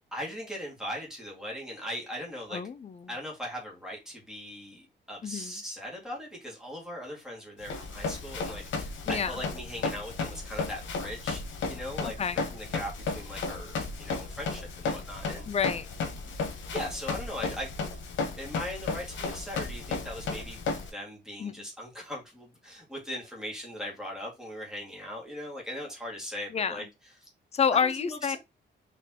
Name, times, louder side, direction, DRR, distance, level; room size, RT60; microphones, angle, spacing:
voice 1, 0.1-2.6 3.1-11.4 11.7-15.5 16.3-16.4 16.7-17.7 18.4-20.6 20.9-27.3 27.7-28.4, equal, 5° right, 1.9 m, -39 dB
voice 2, 2.5-3.0 5.2-5.5 9.1-9.3 12.0-12.4 15.5-15.9 21.4-21.5 26.5-26.8 27.5-28.4, left 6 dB, 35° left, 0.5 m, -28 dB
Run, 7.6-20.9, left 4 dB, 80° left, 0.9 m, -34 dB
4.3 x 3.1 x 2.8 m
cardioid pair, 95°, 19 cm